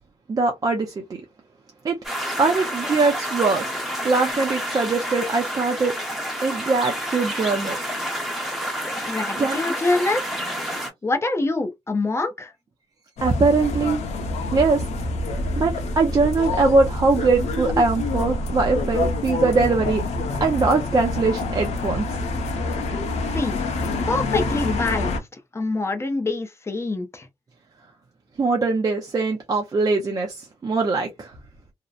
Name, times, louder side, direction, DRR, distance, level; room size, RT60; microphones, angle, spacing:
voice 1, 0.3-0.9 1.8-2.0 2.4-3.7 4.0-5.9 6.4-7.8 9.4-9.6 13.2-14.0 14.5-14.8 15.6-20.0 20.4-22.0 28.4-31.3, right 3 dB, 35° right, 0.5 m, -21 dB
sound 1, 2.0-10.9, equal, ahead, 0.9 m, -29 dB
voice 2, 9.0-10.2 11.0-12.5 23.3-23.6 24.1-25.2 25.5-27.3, left 2 dB, 25° left, 0.5 m, -25 dB
sound 2, 13.2-25.2, left 2 dB, 70° left, 0.7 m, -26 dB
2.7 x 2.0 x 2.3 m
cardioid pair, 125°, 12 cm